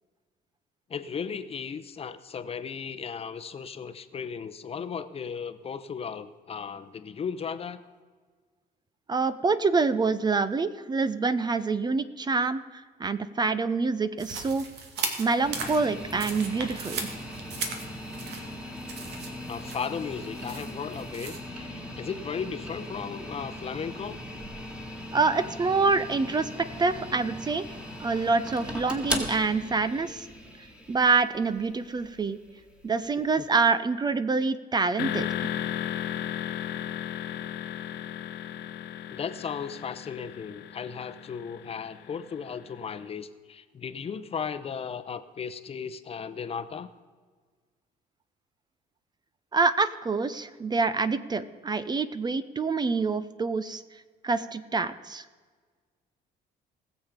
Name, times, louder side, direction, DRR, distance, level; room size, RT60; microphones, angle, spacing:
voice 1, 0.9-7.8 19.5-24.2 33.4-33.5 39.1-46.9, left 6 dB, 35° left, 12 dB, 0.8 m, -36 dB
voice 2, 9.1-14.7 15.2-17.1 25.1-26.5 26.8-27.6 28.0-30.3 30.9-32.4 32.8-35.5 49.5-53.8 54.2-55.2, right 4 dB, 25° right, 14 dB, 0.6 m, -26 dB
sound 1, 14.2-21.4, right 5 dB, 75° right, 2.0 m, -38 dB
sound 2, 15.4-33.5, left 1 dB, 5° right, 2.1 m, -39 dB
sound 3, 35.0-42.8, left 10 dB, 80° left, 1.0 m, -35 dB
19.5 x 7.4 x 5.2 m, 1.5 s
cardioid pair, 110°, 17 cm